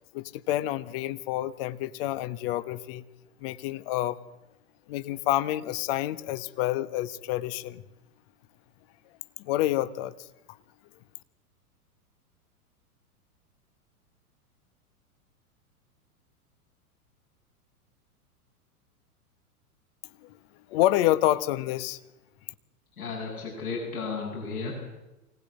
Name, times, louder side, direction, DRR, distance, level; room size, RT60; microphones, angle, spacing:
voice 1, 0.1-3.0 3.4-4.2 4.9-7.8 9.4-10.6 20.2-20.4 20.7-22.0, left 14 dB, 40° left, 15 dB, 1.2 m, -28 dB
voice 2, 23.0-24.7, left 4 dB, 70° left, -3 dB, 7.8 m, -34 dB
24.5 x 18.5 x 9.8 m, 0.99 s
figure-of-eight pair, 95°, 45 cm